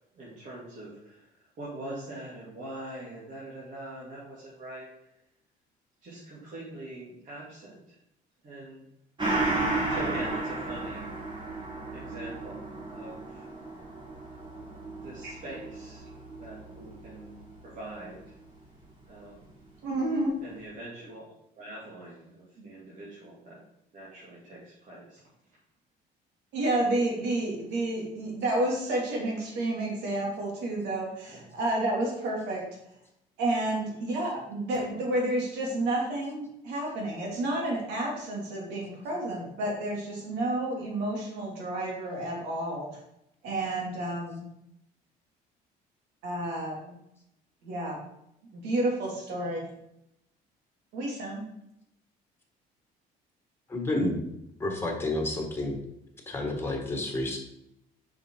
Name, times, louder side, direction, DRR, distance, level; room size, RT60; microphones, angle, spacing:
voice 1, 0.2-1.3 1.6-4.9 6.0-7.9 8.4-8.8 9.9-11.2 11.9-13.4 15.0-17.4 17.6-18.3 19.1-19.5 20.4-23.6 23.9-25.2 31.3-31.5 43.8-43.9, right 1 dB, 50° right, -7 dB, 2.9 m, -43 dB
Gong, 9.2-18.2 18.5-18.6, right 2 dB, 30° right, 3.4 m, -34 dB
voice 2, 19.8-20.3 26.5-32.6 33.4-42.9 43.4-44.5 46.2-46.9 47.6-48.0 48.5-49.6 50.9-51.4, right 1 dB, 90° right, -1 dB, 3.0 m, -30 dB
voice 3, 53.7-54.2 54.6-55.8 56.3-57.4, left 1 dB, 15° left, 1 dB, 2.3 m, -30 dB
7.5 x 5.8 x 4.9 m, 0.81 s
cardioid pair, 110°, 17 cm